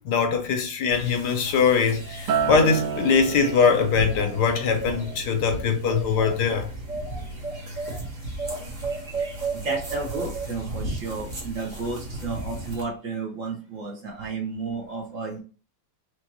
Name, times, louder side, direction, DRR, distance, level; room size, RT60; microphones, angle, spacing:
voice 1, 0.0-6.7, left 5 dB, 70° left, 1.2 m, -22 dB
sound 1, 0.9-12.8, right 2 dB, 30° right, 1.0 m, -34 dB
Acoustic guitar, 2.3-6.7 7.1-7.5, right 6 dB, 80° right, 0.7 m, -32 dB
voice 2, 9.5-15.4, right 3 dB, 55° right, 1.1 m, -32 dB
4.5 x 2.5 x 2.9 m
omnidirectional pair, 2.0 m